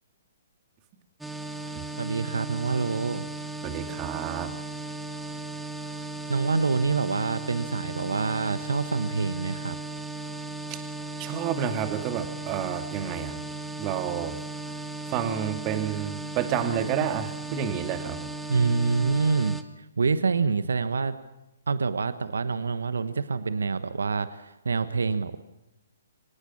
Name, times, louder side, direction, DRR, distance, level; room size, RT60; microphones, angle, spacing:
sound 1, 1.2-19.6, right 2 dB, 5° right, 1.4 m, -36 dB
voice 1, 2.0-3.3 6.3-9.8 18.5-21.1 21.7-25.4, right 4 dB, 80° right, 12 dB, 1.2 m, -26 dB
voice 2, 3.6-4.5 10.7-10.8 11.2-13.4 13.8-14.4 15.1-18.3, right 9 dB, 30° right, 6 dB, 2.5 m, -30 dB
25.0 x 18.5 x 7.3 m, 0.95 s
hypercardioid pair, 135°, 0 cm